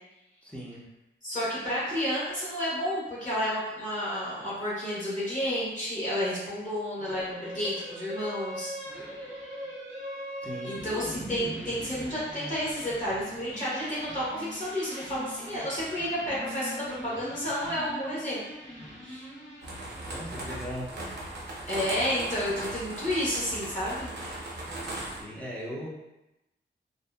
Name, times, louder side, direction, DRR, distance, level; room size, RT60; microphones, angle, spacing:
voice 1, 0.4-0.8 10.4-10.7 20.0-20.9 25.2-25.9, equal, 5° left, -4 dB, 0.5 m, -38 dB
voice 2, 1.2-8.7 9.1-9.4 10.6-18.4 19.0-19.3 21.7-24.1, equal, 40° left, -8 dB, 1.0 m, -31 dB
sound 1, 7.0-20.6, equal, 75° left, 1.0 m, -41 dB
sound 2, 19.6-25.2, right 1 dB, 55° right, 0.6 m, -38 dB
2.6 x 2.3 x 2.2 m, 0.95 s
wide cardioid pair, 125°, 20 cm